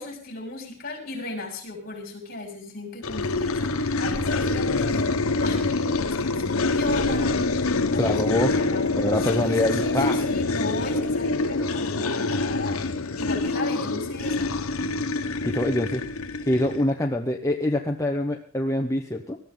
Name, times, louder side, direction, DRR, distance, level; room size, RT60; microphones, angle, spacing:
voice 1, 0.0-5.1 5.4-7.6 7.9-8.8 9.2-12.8 13.2-14.5, left 2 dB, 45° left, 1 dB, 6.0 m, -36 dB
sound 1, 3.0-16.9, left 3 dB, 85° left, 1.1 m, -25 dB
voice 2, 7.9-8.5 9.0-10.3 15.4-16.0 16.5-19.4, left 1 dB, 15° left, 2 dB, 1.0 m, -25 dB
20.0 x 13.5 x 3.9 m, 0.42 s
head